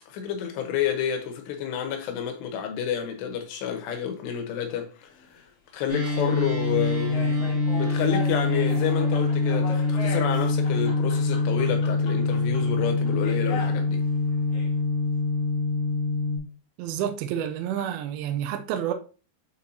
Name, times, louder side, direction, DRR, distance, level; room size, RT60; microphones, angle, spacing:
voice 1, 0.0-5.1 5.7-14.0, left 8 dB, 85° left, 3.2 m, -30 dB
sound 1, 5.1-5.2 5.9-13.9 14.3-14.7, left 4 dB, 50° left, 2.0 m, -39 dB
sound 2, 5.9-16.4, left 3 dB, 45° right, 4.0 m, -25 dB
voice 2, 16.8-18.9, right 10 dB, 85° right, 2.2 m, -29 dB
8.4 x 4.7 x 2.8 m
omnidirectional pair, 5.0 m